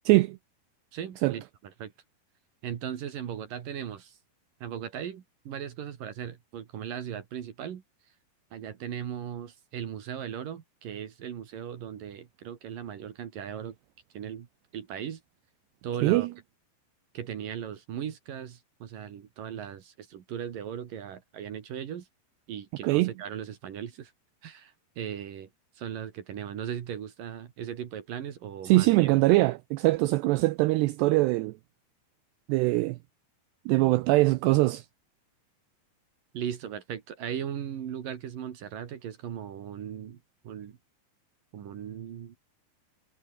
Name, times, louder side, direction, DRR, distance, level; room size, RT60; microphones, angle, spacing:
voice 1, 0.1-0.4 1.2-1.3 16.0-16.3 22.8-23.1 28.6-31.5 32.5-33.0 33.7-34.9, right 20 dB, 80° right, 2.5 m, -22 dB
voice 2, 0.9-1.9 2.6-4.2 4.6-7.8 8.5-13.8 14.1-14.5 14.7-15.2 15.8-16.3 17.1-22.1 22.5-24.1 24.4-25.5 25.7-29.1 36.3-40.8 41.5-42.4, right 9 dB, 55° right, 3.0 m, -38 dB
omnidirectional pair, 5.4 m